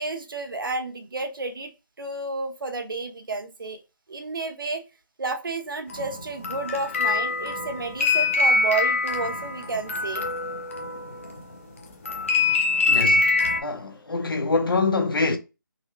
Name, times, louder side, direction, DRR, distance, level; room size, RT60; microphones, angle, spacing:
voice 1, 0.0-1.7 2.0-3.8 4.1-4.8 5.2-10.2, right 3 dB, 75° right, 0.9 m, -31 dB
sound 1, 5.9-11.5 12.1-13.6, left 3 dB, 40° left, 0.6 m, -24 dB
voice 2, 12.9-13.3 13.6-15.4, left 3 dB, 85° left, 0.9 m, -25 dB
3.9 x 2.1 x 3.0 m
hypercardioid pair, 175°, 11 cm